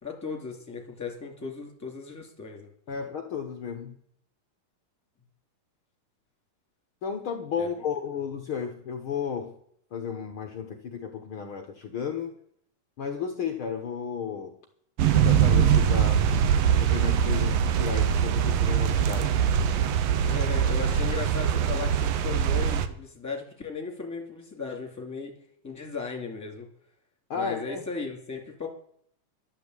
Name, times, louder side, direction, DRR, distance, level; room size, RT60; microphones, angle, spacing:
voice 1, 0.0-2.7 7.6-7.7 20.2-25.3 25.6-26.7 27.3-28.7, left 5 dB, 5° left, 1 dB, 2.7 m, -36 dB
voice 2, 2.9-3.9 7.0-9.5 9.9-12.3 13.0-14.6 15.1-16.3 16.8-19.4 27.3-27.8, left 6 dB, 60° left, 4 dB, 1.4 m, -33 dB
sound 1, 15.0-22.9, right 8 dB, 75° right, 1.5 m, -23 dB
12.0 x 11.5 x 8.2 m, 0.66 s
omnidirectional pair, 4.0 m